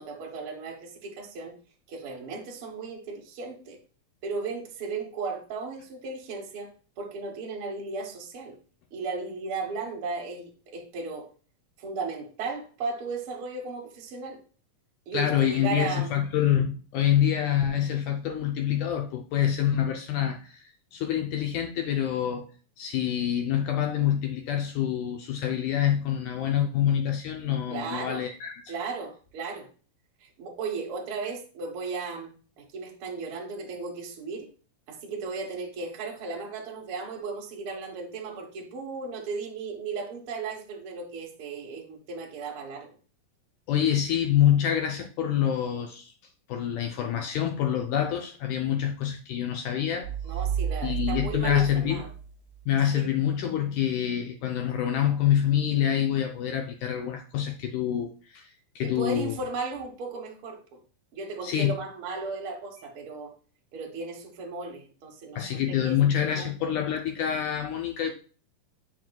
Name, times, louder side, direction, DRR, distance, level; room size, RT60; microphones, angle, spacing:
voice 1, 0.0-1.5 1.9-3.8 4.2-6.7 7.0-8.6 8.9-11.3 11.8-14.4 15.1-16.1 27.7-28.3 28.7-29.7 30.2-34.5 34.9-42.9 50.2-52.1 52.9-53.1 58.8-60.8 61.1-63.3 63.7-65.6 65.8-66.0 66.3-66.7, right 4 dB, 60° right, 0 dB, 1.4 m, -35 dB
voice 2, 15.1-20.6 20.9-22.5 22.8-28.6 43.7-46.1 46.5-50.1 50.8-52.0 52.7-58.5 58.8-59.3 61.4-61.7 65.4-68.1, left 10 dB, 75° left, 3 dB, 1.9 m, -26 dB
sound 1, 50.0-52.8, right 8 dB, 35° right, 2.0 m, -32 dB
7.6 x 5.5 x 2.3 m, 0.37 s
omnidirectional pair, 4.0 m